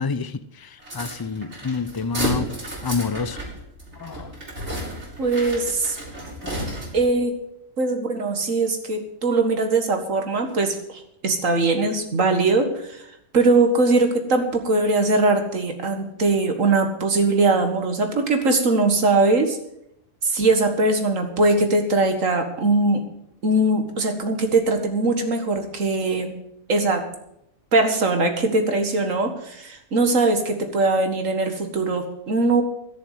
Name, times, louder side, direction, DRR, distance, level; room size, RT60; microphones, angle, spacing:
voice 1, 0.0-2.5 2.8-3.4 4.0-4.3 6.4-6.6, left 5 dB, 30° left, 13 dB, 0.4 m, -28 dB
sound 1, 0.8-7.2, right 1 dB, 60° right, 3.8 m, -32 dB
voice 2, 5.2-6.0 6.9-7.3 7.8-13.0 13.3-19.6 20.2-23.0 23.4-26.3 26.7-27.0 27.7-32.6, right 2 dB, 80° right, 6 dB, 2.2 m, -21 dB
13.0 x 7.1 x 9.3 m, 0.77 s
omnidirectional pair, 1.3 m